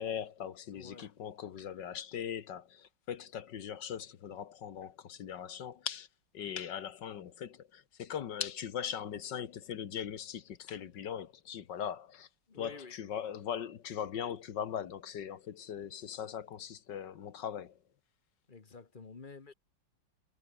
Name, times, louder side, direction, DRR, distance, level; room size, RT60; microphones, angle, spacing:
voice 1, 0.0-6.1 6.3-12.3 12.6-17.8, left 9 dB, 75° left, 1.9 m, -40 dB
voice 2, 0.7-1.1 12.5-13.0 18.5-19.5, left 4 dB, 30° left, 1.4 m, -50 dB
omnidirectional pair, 1.9 m